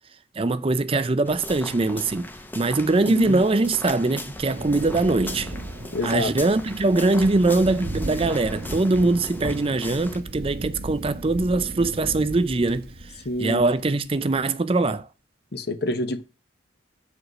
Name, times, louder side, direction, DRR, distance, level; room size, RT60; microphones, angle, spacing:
voice 1, 0.4-2.3 2.5-5.5 6.0-12.8 13.4-15.1, right 2 dB, 30° right, 0.5 m, -22 dB
sound 1, 1.2-10.2, left 1 dB, 10° left, 0.7 m, -39 dB
voice 2, 3.1-3.4 5.9-6.3 13.2-13.6 15.5-16.2, left 1 dB, 55° left, 1.0 m, -27 dB
Thunder, 4.5-14.2, right 1 dB, 50° right, 1.0 m, -36 dB
7.8 x 4.9 x 6.2 m
head